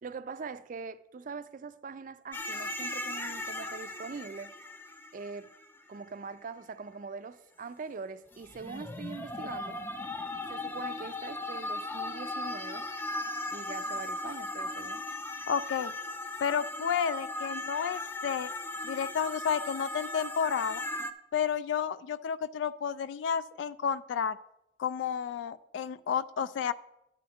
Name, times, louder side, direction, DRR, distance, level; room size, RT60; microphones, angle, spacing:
voice 1, 0.0-4.5 5.1-5.5 5.9-9.8 10.5-12.8 13.5-15.0, right 4 dB, 45° right, 0.4 m, -42 dB
sound 1, 2.3-6.0 8.3-21.1, left 2 dB, 10° left, 0.5 m, -37 dB
voice 2, 15.5-15.9 16.4-18.5 18.8-20.8 21.3-24.4 24.8-26.7, left 7 dB, 90° left, 0.3 m, -31 dB
11.0 x 8.5 x 3.6 m
head